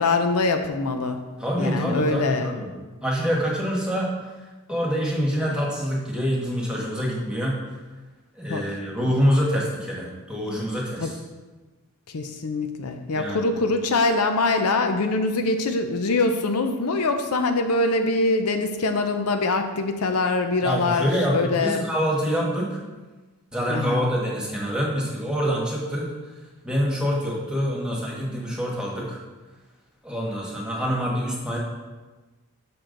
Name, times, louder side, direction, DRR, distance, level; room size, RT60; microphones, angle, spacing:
voice 1, 0.0-1.2 1.6-2.5 8.5-8.6 11.0-11.1 12.1-21.8 23.7-24.1, left 3 dB, 85° left, 6 dB, 0.6 m, -23 dB
voice 2, 1.4-2.7 3.0-4.1 4.7-7.6 8.4-11.2 13.1-13.5 20.6-22.8 23.5-26.1 26.6-29.2 30.0-31.6, equal, 5° right, -3 dB, 1.3 m, -26 dB
6.9 x 6.0 x 3.8 m, 1.2 s
head